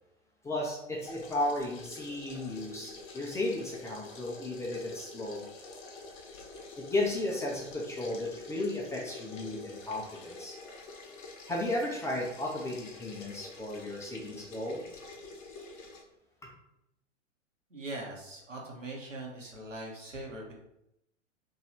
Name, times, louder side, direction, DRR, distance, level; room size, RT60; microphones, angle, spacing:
voice 1, 0.4-5.4 6.8-10.6 11.5-14.8, left 1 dB, 10° left, -3 dB, 0.5 m, -34 dB
sound 1, 1.0-16.0, left 3 dB, 40° left, 0.9 m, -47 dB
voice 2, 17.7-20.5, right 2 dB, 85° right, -2 dB, 1.3 m, -41 dB
3.1 x 2.7 x 4.3 m, 0.82 s
figure-of-eight pair, 105°, 37 cm